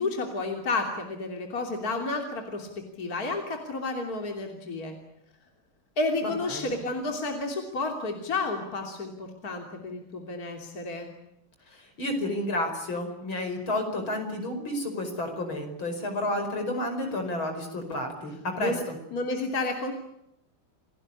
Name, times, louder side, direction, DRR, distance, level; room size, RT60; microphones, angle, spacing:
voice 1, 0.0-5.0 6.0-11.1 18.6-18.8 19.1-19.9, left 2 dB, 40° left, 3 dB, 3.5 m, -31 dB
voice 2, 6.2-6.8 11.7-19.0, left 1 dB, 65° left, 6 dB, 5.9 m, -31 dB
28.5 x 18.5 x 9.8 m, 0.79 s
omnidirectional pair, 2.3 m